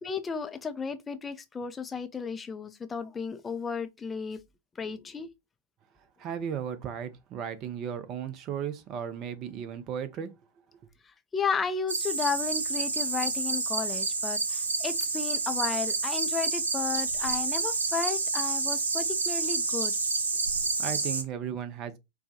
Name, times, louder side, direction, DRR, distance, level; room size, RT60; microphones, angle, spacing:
voice 1, 0.0-4.4 4.8-5.3 11.3-19.9, left 5 dB, 15° left, 0.4 m, -33 dB
voice 2, 6.2-10.3 20.8-22.0, right 8 dB, 35° right, 0.6 m, -35 dB
sound 1, 11.9-21.2, right 3 dB, 75° right, 0.6 m, -29 dB
4.4 x 2.2 x 2.7 m
figure-of-eight pair, 90°, 0 cm